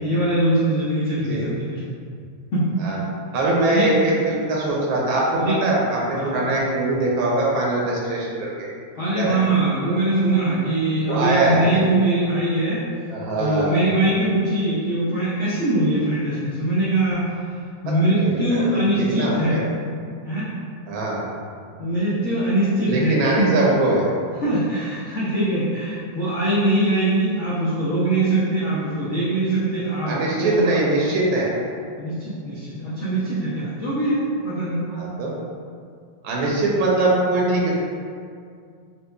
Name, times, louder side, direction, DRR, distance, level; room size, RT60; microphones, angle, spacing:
voice 1, 0.0-1.8 2.5-2.7 3.7-3.9 5.4-5.6 6.1-6.6 8.9-12.8 13.4-17.4 17.8-19.6 20.2-20.5 21.8-23.5 24.4-30.1 30.4-30.8 32.0-34.9, right 1 dB, 85° left, -9 dB, 0.6 m, -22 dB
voice 2, 3.3-8.7 9.1-9.4 11.1-11.9 13.1-13.8 18.1-19.7 20.9-21.2 22.8-24.1 30.0-31.6 34.9-35.3 36.2-37.7, right 2 dB, 85° right, -3 dB, 1.4 m, -22 dB
4.3 x 2.6 x 2.2 m, 2.2 s
omnidirectional pair, 2.1 m